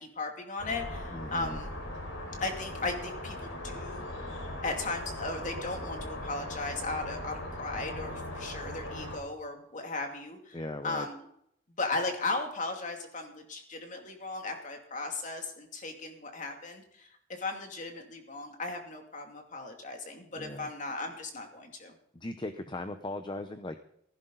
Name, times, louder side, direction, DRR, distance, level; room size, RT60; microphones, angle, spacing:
voice 1, 0.0-1.7 2.4-4.1 4.6-10.6 10.8-11.2 11.8-21.9, left 3 dB, 40° left, 3 dB, 2.6 m, -36 dB
sound 1, 0.6-9.2, left 1 dB, 80° left, 4.0 m, -39 dB
voice 2, 1.1-1.6 10.5-11.1 20.4-20.7 22.1-23.8, left 2 dB, 25° left, 9 dB, 0.7 m, -38 dB
15.5 x 15.5 x 4.0 m, 0.73 s
head